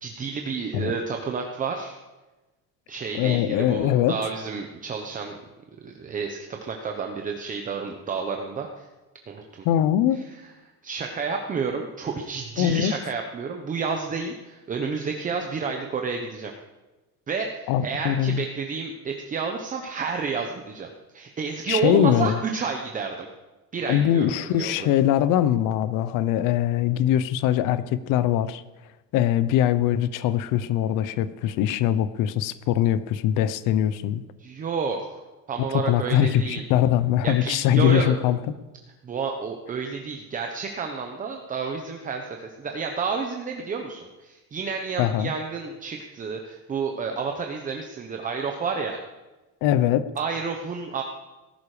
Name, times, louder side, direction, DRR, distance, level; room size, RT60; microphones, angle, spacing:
voice 1, 0.0-2.0 2.9-5.4 5.8-8.9 9.3-9.7 10.1-10.2 10.8-16.5 17.3-23.3 23.7-24.9 34.4-35.2 35.5-36.6 37.2-38.2 39.0-49.0 50.2-51.0, right 5 dB, 25° right, 3 dB, 1.0 m, -30 dB
voice 2, 3.1-4.2 9.6-10.2 12.6-12.9 17.7-18.4 21.7-22.4 23.9-28.6 29.1-34.2 35.7-38.4 45.0-45.3 49.6-50.1, left 11 dB, 65° left, 14 dB, 0.9 m, -22 dB
18.5 x 12.0 x 5.0 m, 1.1 s
cardioid pair, 170°, 34 cm